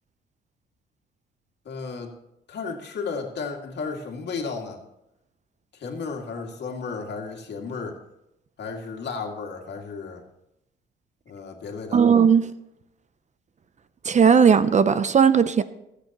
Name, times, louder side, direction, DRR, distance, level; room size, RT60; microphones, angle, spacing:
voice 1, 1.7-2.1 2.5-4.8 5.7-8.0 8.6-10.2 11.3-12.0, left 4 dB, 60° left, 2.2 m, -33 dB
voice 2, 11.9-12.5 14.0-15.6, right 6 dB, 35° right, 0.6 m, -17 dB
23.0 x 8.3 x 3.0 m
cardioid pair, 90°, 20 cm